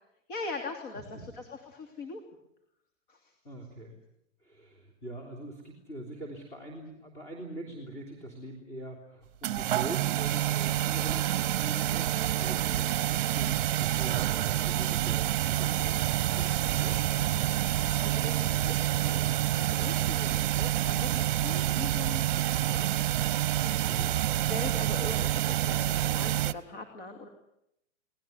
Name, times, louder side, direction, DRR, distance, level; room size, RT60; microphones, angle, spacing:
voice 1, 0.3-2.2 3.1-3.3 17.1-19.2 19.6-22.9 24.5-27.3, left 3 dB, 45° left, 5 dB, 2.9 m, -41 dB
voice 2, 3.4-4.0 4.4-17.0 23.8-24.2, right 1 dB, 20° left, 1 dB, 3.5 m, -43 dB
sound 1, 9.4-26.5, right 13 dB, 45° right, 0.9 m, -28 dB
23.5 x 19.0 x 9.7 m, 0.80 s
hypercardioid pair, 165°, 37 cm